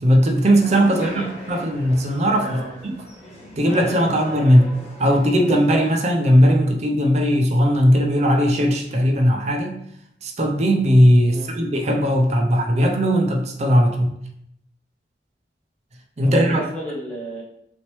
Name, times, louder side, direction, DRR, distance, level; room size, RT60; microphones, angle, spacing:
voice 1, 0.0-2.6 3.6-4.7 5.0-9.8 10.2-14.1 16.2-16.6, equal, 35° right, 2 dB, 0.5 m, -18 dB
sound 1, 0.6-5.9, equal, 35° left, 1.2 m, -38 dB
voice 2, 0.9-1.3 2.4-2.8 11.3-11.5 16.2-17.4, right 1 dB, 10° left, -7 dB, 0.8 m, -34 dB
4.1 x 2.9 x 3.0 m, 0.73 s
head